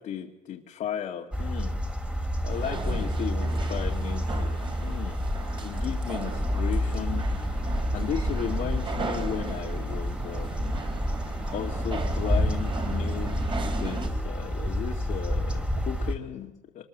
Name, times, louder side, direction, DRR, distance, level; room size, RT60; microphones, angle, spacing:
voice 1, 0.0-1.8 2.4-5.2 5.6-10.8 11.5-13.3 13.8-16.8, left 9 dB, 55° left, 0 dB, 2.0 m, -35 dB
sound 1, 1.3-16.1, equal, 5° right, 2.5 m, -29 dB
sound 2, 2.5-14.1, right 3 dB, 30° right, 3.6 m, -36 dB
25.0 x 20.0 x 7.3 m, 0.99 s
cardioid pair, 145°, 16 cm